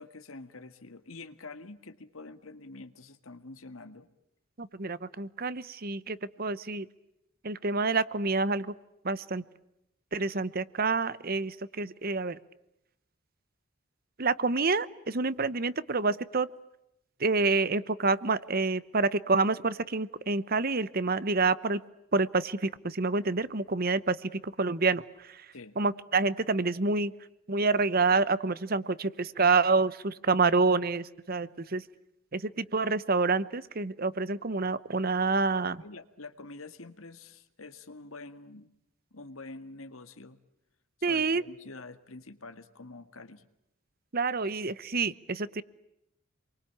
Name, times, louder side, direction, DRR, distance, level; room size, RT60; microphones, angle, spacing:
voice 1, 0.0-4.1 25.5-25.8 35.7-38.7 39.1-40.4 41.1-43.5, left 3 dB, 75° left, 10 dB, 1.9 m, -46 dB
voice 2, 4.6-6.9 7.4-8.7 9.0-9.4 10.1-12.4 14.2-16.5 17.2-21.8 22.1-25.5 25.8-27.1 27.5-31.8 32.3-35.8 41.0-41.4 44.1-45.6, right 3 dB, 45° right, 16 dB, 1.0 m, -28 dB
28.5 x 23.5 x 8.8 m, 0.84 s
head